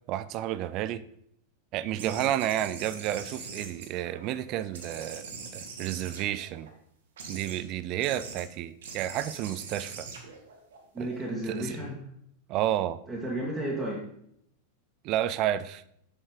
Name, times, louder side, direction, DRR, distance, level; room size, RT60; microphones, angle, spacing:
voice 1, 0.1-1.0 1.7-6.7 7.3-10.1 11.0-11.1 11.5-11.8 12.5-13.0 15.0-15.8, right 12 dB, 40° right, 15 dB, 0.5 m, -31 dB
sound 1, 2.0-4.4 4.7-6.7 7.2-7.6 8.0-8.4 8.8-11.3, right 4 dB, 60° right, 1.6 m, -43 dB
voice 2, 10.9-12.0 13.1-14.0, right 1 dB, 10° right, -5 dB, 1.9 m, -33 dB
7.4 x 6.2 x 4.9 m, 0.71 s
figure-of-eight pair, 90°, 0 cm